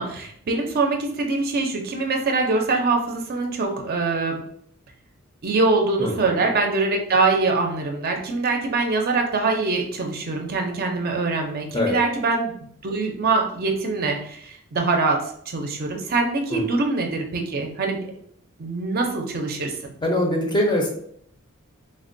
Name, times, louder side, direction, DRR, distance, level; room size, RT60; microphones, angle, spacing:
voice 1, 0.0-4.4 5.4-12.5 12.8-18.1 18.6-19.8, right 3 dB, 45° right, 2 dB, 0.4 m, -23 dB
voice 2, 6.0-6.4 11.7-12.0 16.5-16.8 20.0-20.9, left 1 dB, 20° left, 1 dB, 0.5 m, -23 dB
3.3 x 2.1 x 2.5 m, 0.66 s
head